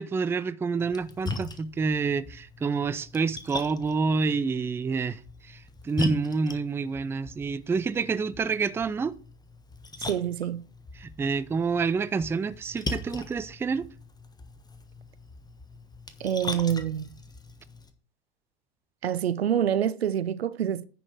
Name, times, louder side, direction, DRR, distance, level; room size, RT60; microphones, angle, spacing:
voice 1, 0.0-9.2 11.0-13.8, right 4 dB, 10° right, 0.4 m, -28 dB
Splash splatter, 0.8-17.9, left 2 dB, 10° left, 1.3 m, -40 dB
voice 2, 10.0-10.6 16.2-17.1 19.0-20.8, right 9 dB, 75° right, 0.7 m, -26 dB
10.0 x 6.1 x 4.6 m
figure-of-eight pair, 75°, 31 cm